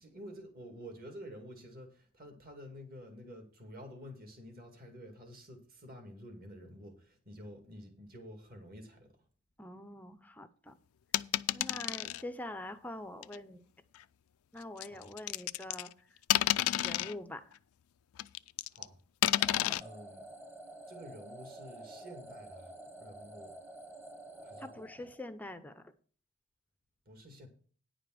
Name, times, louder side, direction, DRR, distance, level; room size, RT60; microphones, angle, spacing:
voice 1, 0.0-9.1 14.8-15.1 18.7-19.0 19.6-20.2 20.9-23.5 24.4-24.7 24.9-25.1 27.1-27.5, equal, 40° right, 2.2 m, -50 dB
voice 2, 9.6-10.8 11.5-13.6 14.5-15.9 16.8-17.6 19.6-19.8 24.6-25.9, left 1 dB, 5° left, 0.6 m, -45 dB
sound 1, 11.1-12.2 13.2-13.4 14.8-15.9 16.3-17.1 18.2-18.8 19.2-19.8, left 13 dB, 70° left, 0.4 m, -30 dB
sound 2, 19.4-25.5, right 1 dB, 10° right, 1.1 m, -50 dB
10.0 x 5.0 x 7.6 m
head